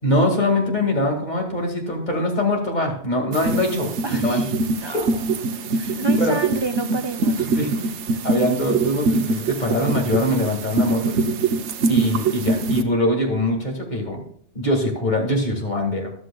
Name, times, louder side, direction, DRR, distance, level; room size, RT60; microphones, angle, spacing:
voice 1, 0.0-4.4 4.8-5.0 5.9-6.4 7.5-7.8 8.2-11.2 11.9-14.2 14.5-16.1, left 1 dB, 40° left, 1 dB, 2.2 m, -23 dB
sound 1, 3.3-12.8, right 3 dB, 75° right, 1.1 m, -23 dB
voice 2, 4.0-4.5 4.8-5.2 5.7-7.9 11.9-12.1, right 3 dB, 35° right, 7 dB, 0.4 m, -30 dB
14.0 x 11.5 x 2.3 m, 0.64 s
omnidirectional pair, 1.2 m